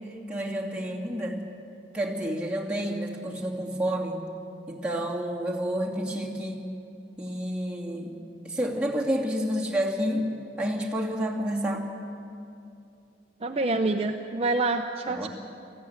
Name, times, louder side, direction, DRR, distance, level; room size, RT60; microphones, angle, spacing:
voice 1, 0.3-1.4 1.9-4.2 4.7-6.7 7.2-8.2 8.4-10.2 10.6-11.9 15.1-15.3, equal, 5° right, -3 dB, 2.5 m, -29 dB
voice 2, 13.4-15.3, right 2 dB, 35° right, 4 dB, 0.7 m, -26 dB
19.5 x 15.0 x 9.4 m, 2.6 s
head